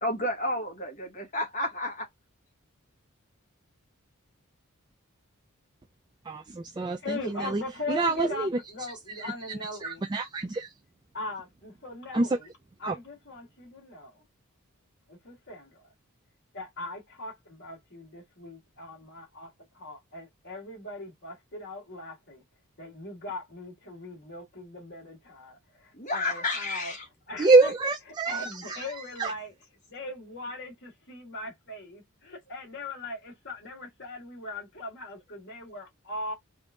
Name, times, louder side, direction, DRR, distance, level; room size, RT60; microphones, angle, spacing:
voice 1, 0.0-2.1 25.9-27.0, left 1 dB, 35° left, 1.5 m, -31 dB
voice 2, 6.3-7.6 7.9-8.6 9.2-10.7 12.1-12.3 12.8-12.9 27.4-28.8 29.2-29.3, right 3 dB, 20° right, 0.3 m, -26 dB
voice 3, 6.8-10.0 11.1-12.5 12.8-14.2 15.1-15.9 16.5-22.4 22.8-26.9 27.3-27.7 28.3-29.5 29.9-36.3, left 2 dB, 50° left, 1.7 m, -40 dB
3.6 x 2.6 x 3.5 m
head